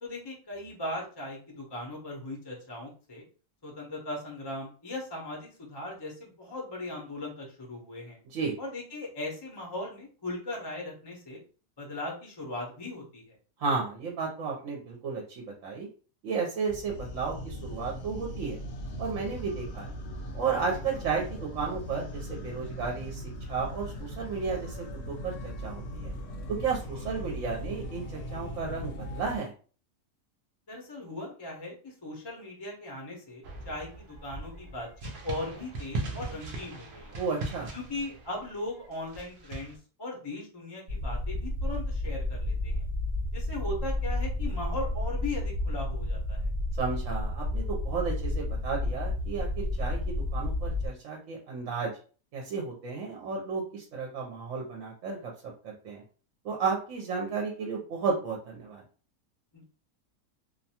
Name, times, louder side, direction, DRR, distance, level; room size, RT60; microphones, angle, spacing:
voice 1, 0.0-3.2 3.6-8.2 8.6-11.4 11.8-13.4 30.7-37.3 37.7-42.8 43.3-46.5 59.5-59.6, left 2 dB, 25° left, -1 dB, 0.5 m, -38 dB
voice 2, 13.6-15.9 16.2-18.6 19.0-19.9 20.3-23.2 23.5-25.3 25.6-26.1 26.5-29.5 37.2-37.7 46.8-51.9 52.3-55.3 55.6-56.0 56.4-58.8, right 5 dB, 65° right, -1 dB, 0.9 m, -33 dB
sound 1, 16.7-29.4, equal, 70° left, 0.9 m, -39 dB
sound 2, 33.4-39.8, right 2 dB, 90° right, 0.4 m, -39 dB
sound 3, 40.9-50.9, left 1 dB, 35° right, 1.0 m, -31 dB
2.5 x 2.2 x 2.8 m, 0.38 s
omnidirectional pair, 1.5 m